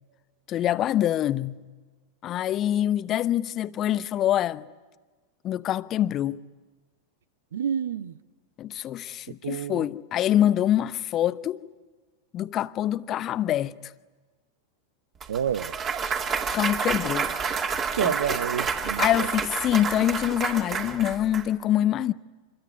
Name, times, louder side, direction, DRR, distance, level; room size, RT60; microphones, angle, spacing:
voice 1, 0.5-1.6 2.2-4.7 5.4-6.4 8.6-11.6 12.3-13.7 16.5-17.3 18.0-18.1 19.0-22.1, left 12 dB, 30° left, 0.8 m, -25 dB
voice 2, 7.5-8.2 9.4-9.9 15.3-15.7 16.1-16.2 17.9-19.3, right 8 dB, 65° right, 0.8 m, -29 dB
Clapping / Cheering / Applause, 15.2-21.4, right 6 dB, 25° right, 2.6 m, -29 dB
26.5 x 22.0 x 9.8 m
figure-of-eight pair, 90°, 0 cm